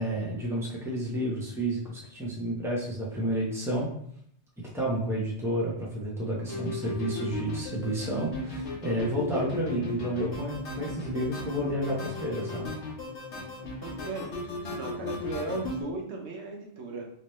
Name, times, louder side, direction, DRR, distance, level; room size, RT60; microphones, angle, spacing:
voice 1, 0.0-3.9 4.7-12.7, right 1 dB, 5° right, -4 dB, 0.8 m, -30 dB
sound 1, 6.5-15.8, left 3 dB, 85° left, 1.1 m, -36 dB
voice 2, 13.6-17.1, right 3 dB, 80° right, 0 dB, 1.0 m, -37 dB
3.2 x 2.9 x 3.1 m, 0.67 s
omnidirectional pair, 1.1 m